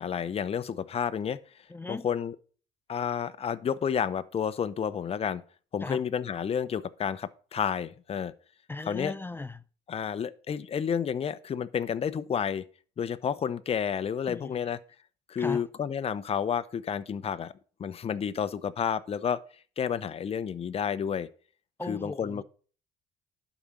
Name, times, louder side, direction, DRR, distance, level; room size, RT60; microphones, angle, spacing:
voice 1, 0.0-1.4 1.9-2.4 2.9-5.4 5.7-8.3 8.9-9.1 9.9-12.6 13.0-14.8 15.3-17.5 17.8-19.4 19.8-21.3 21.9-22.4, left 7 dB, 35° left, 0.8 m, -30 dB
voice 2, 1.7-2.1 5.8-6.0 8.7-9.6 14.3-14.6 15.4-15.6 21.8-22.4, left 2 dB, 15° left, 0.5 m, -37 dB
11.5 x 5.1 x 7.1 m
cardioid pair, 110°, 17 cm